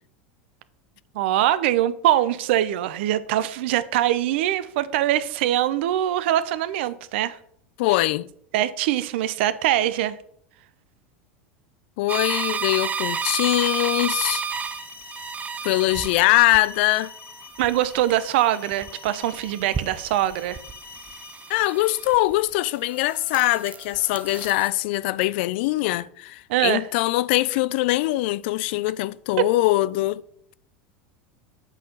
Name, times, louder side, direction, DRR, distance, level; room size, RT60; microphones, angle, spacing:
voice 1, 1.1-7.4 8.5-10.2 17.6-20.6 26.5-26.9 29.4-29.5, right 13 dB, 65° right, 0.7 m, -23 dB
voice 2, 7.8-8.3 12.0-14.4 15.6-17.1 21.5-30.2, left 18 dB, 60° left, 0.4 m, -22 dB
sound 1, 12.1-21.7, left 7 dB, 35° left, 1.5 m, -45 dB
sound 2, 12.1-22.5 22.9-24.7, right 6 dB, 25° right, 0.6 m, -32 dB
8.2 x 4.4 x 6.7 m
hypercardioid pair, 85°, 7 cm